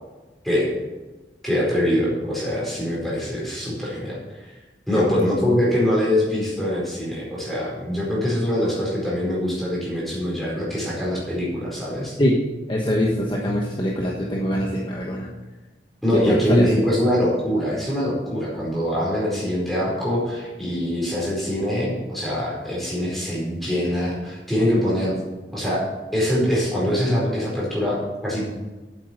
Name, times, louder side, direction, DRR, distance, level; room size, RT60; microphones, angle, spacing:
voice 1, 1.4-4.4 4.9-12.1 16.0-25.1 25.5-25.9 26.1-28.5, equal, ahead, -6 dB, 4.7 m, -23 dB
voice 2, 12.7-15.3 16.1-16.8, equal, 25° left, -2 dB, 1.2 m, -23 dB
8.6 x 8.1 x 8.1 m, 1.2 s
head